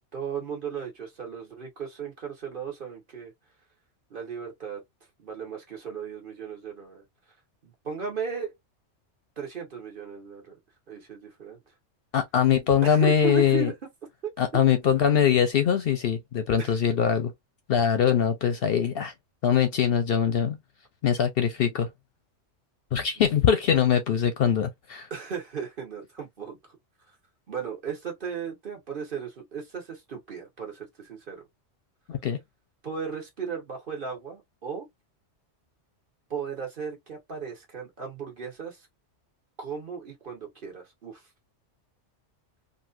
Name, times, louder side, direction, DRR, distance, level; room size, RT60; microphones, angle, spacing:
voice 1, 0.1-3.3 4.1-4.8 5.2-7.0 7.6-8.5 9.4-10.6 10.9-11.6 12.8-13.7 14.2-14.6 16.6-17.0 25.1-26.8 27.5-31.5 32.8-34.9 36.3-38.9 39.6-41.2, right 6 dB, 45° right, 1.4 m, -36 dB
voice 2, 12.1-13.7 14.4-17.3 17.7-19.1 19.4-20.6 21.0-21.9 22.9-25.1 32.1-32.4, left 8 dB, 65° left, 0.7 m, -22 dB
3.1 x 2.6 x 2.5 m
omnidirectional pair, 1.2 m